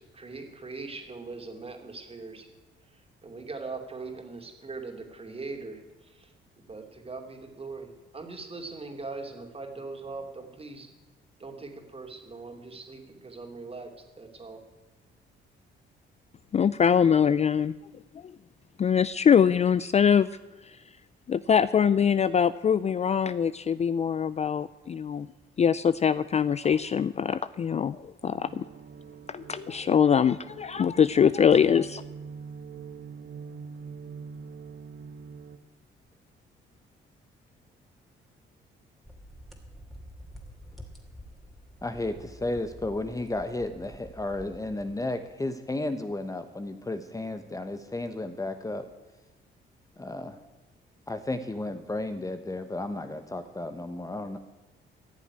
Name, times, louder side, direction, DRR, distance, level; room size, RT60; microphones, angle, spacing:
voice 1, 0.0-2.5 2.9-10.9 11.4-13.9 14.2-14.6, right 3 dB, 30° right, 3 dB, 2.7 m, -41 dB
voice 2, 16.5-17.7 18.8-20.3 20.6-20.7 21.3-25.3 25.6-28.6 29.3-32.0, left 7 dB, 35° left, 16 dB, 0.4 m, -23 dB
sound 1, 28.2-35.6, right 6 dB, 60° right, 1.2 m, -44 dB
sound 2, 39.0-45.4, equal, ahead, 2.7 m, -48 dB
voice 3, 41.8-48.8 50.0-50.4 51.1-54.4, left 2 dB, 15° left, 8 dB, 1.0 m, -33 dB
14.0 x 7.2 x 9.8 m, 1.2 s
cardioid pair, 90°, 20 cm